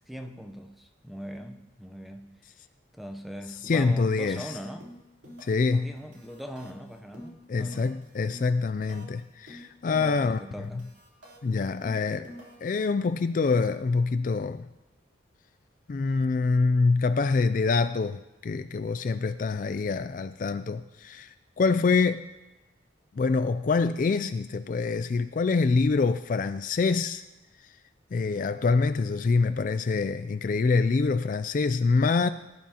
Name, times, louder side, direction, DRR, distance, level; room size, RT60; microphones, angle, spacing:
voice 1, 0.0-2.5 2.9-4.9 5.7-7.9 10.0-10.8, equal, ahead, 0.7 m, -41 dB
voice 2, 3.6-4.6 5.4-5.9 7.5-10.4 10.7-10.8 11.4-12.3 12.6-14.7 15.9-22.2 23.1-27.2 27.6-27.7 28.1-32.3, left 4 dB, 45° left, 0.3 m, -25 dB
sound 1, 3.6-3.9 4.2-4.5 4.8-5.7 6.0-9.2 9.5-10.4 10.6-12.8, equal, 65° right, 3.7 m, -48 dB
18.5 x 11.5 x 2.9 m
head